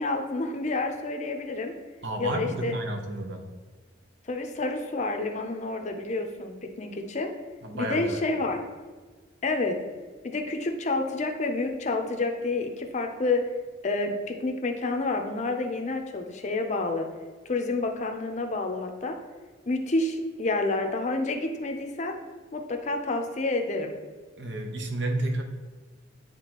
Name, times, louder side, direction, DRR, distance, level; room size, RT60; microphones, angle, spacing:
voice 1, 0.0-1.7 2.2-2.7 4.3-7.3 7.7-8.6 9.4-9.8 10.2-13.4 13.8-17.1 17.5-19.2 19.7-22.2 22.5-23.9, left 2 dB, 35° left, 4 dB, 0.6 m, -29 dB
voice 2, 2.0-3.5 7.6-8.2 24.4-25.4, right 1 dB, 65° right, 3 dB, 0.8 m, -31 dB
9.7 x 3.6 x 3.0 m, 1.4 s
head